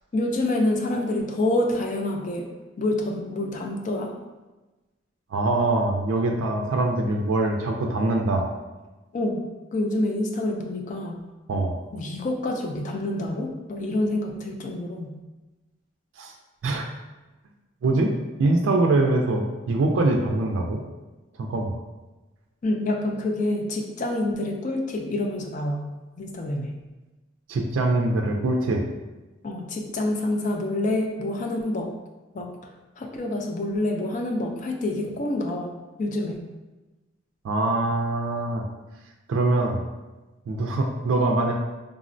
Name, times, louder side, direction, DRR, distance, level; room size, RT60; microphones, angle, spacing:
voice 1, 0.1-2.5 2.8-4.1 9.1-9.4 9.7-11.2 11.9-15.1 22.6-25.8 26.2-26.7 29.4-31.9 32.3-32.5 33.0-36.4, left 1 dB, 40° left, 2 dB, 0.3 m, -27 dB
voice 2, 5.3-8.4 11.5-11.8 16.2-16.3 16.6-16.9 17.8-20.8 21.4-21.8 27.5-28.8 37.4-38.6 39.3-39.8 40.5-41.5, right 2 dB, 80° right, 1 dB, 0.3 m, -23 dB
3.6 x 2.0 x 2.5 m, 1.1 s
head